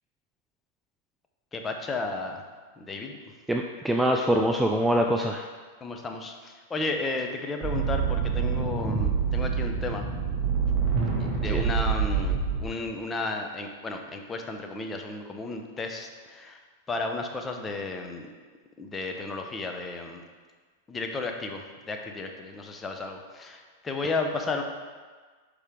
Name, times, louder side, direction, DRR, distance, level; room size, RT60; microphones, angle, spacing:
voice 1, 1.5-2.4 2.8-3.2 5.8-10.0 11.2-16.6 16.9-18.3 18.8-20.2 20.9-24.6, left 3 dB, 20° left, 3 dB, 0.8 m, -33 dB
voice 2, 3.5-5.5 11.4-11.7, equal, 5° right, 2 dB, 0.4 m, -24 dB
sound 1, 7.6-12.7, right 6 dB, 30° right, 2.0 m, -26 dB
6.4 x 4.9 x 3.7 m, 1.5 s
hypercardioid pair, 105°, 0 cm